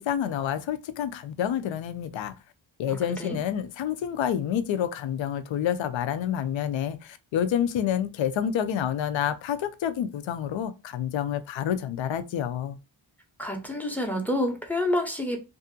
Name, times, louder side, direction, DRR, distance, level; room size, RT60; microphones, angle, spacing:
voice 1, 0.0-2.3 2.8-12.8, left 9 dB, 75° left, 0.5 m, -28 dB
voice 2, 2.9-3.4 13.4-15.4, left 1 dB, 5° left, 0.6 m, -28 dB
2.6 x 2.4 x 2.5 m
wide cardioid pair, 105°, 47 cm